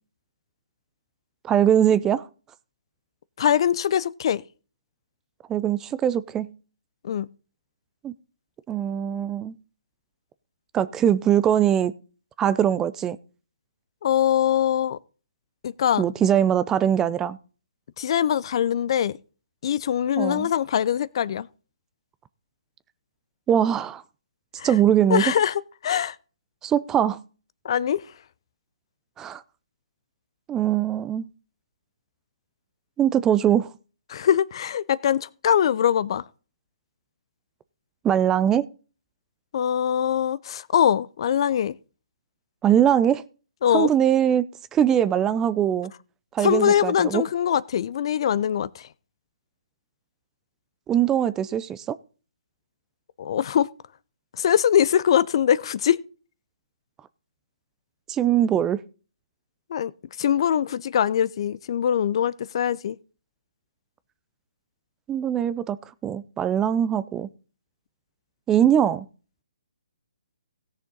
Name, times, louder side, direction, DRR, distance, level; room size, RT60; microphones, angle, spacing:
voice 1, 1.4-2.2 5.5-6.5 8.0-8.1 8.7-9.5 10.7-11.9 12.4-13.2 16.0-17.4 20.2-20.5 23.5-24.0 24.6-25.2 26.6-27.2 29.2-29.4 30.5-31.2 33.0-33.7 38.0-38.7 42.6-43.2 43.7-44.4 44.7-45.9 46.3-47.2 50.9-52.0 58.1-58.8 65.1-65.8 66.0-67.3 68.5-69.0, right 10 dB, 15° right, 0.5 m, -21 dB
voice 2, 3.4-4.4 7.0-7.3 14.0-15.0 15.6-16.0 18.0-19.2 19.6-21.5 24.6-24.8 25.1-26.2 27.6-28.0 34.1-36.2 39.5-41.7 43.6-43.9 46.4-48.9 53.2-53.7 54.4-56.0 59.7-59.9 60.2-63.0, left 9 dB, 45° left, 0.5 m, -22 dB
17.0 x 6.6 x 4.0 m
figure-of-eight pair, 145°, 4 cm